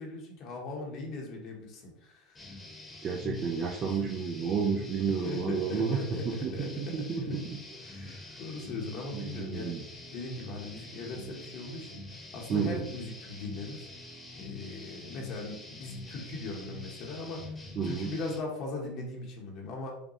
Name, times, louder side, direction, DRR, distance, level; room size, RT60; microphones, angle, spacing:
voice 1, 0.0-2.4 5.1-7.0 7.2-7.4 7.9-9.8 10.1-12.0 12.3-13.9 14.4-17.5 17.8-20.0, left 2 dB, 55° left, 0 dB, 1.0 m, -39 dB
sound 1, 2.3-18.4, left 3 dB, 15° left, 1.0 m, -45 dB
voice 2, 3.0-7.6 8.0-8.2 9.1-9.8 12.5-12.9 17.8-18.1, right 5 dB, 40° right, 0 dB, 0.6 m, -31 dB
5.1 x 2.2 x 3.0 m, 0.74 s
supercardioid pair, 105°, 0 cm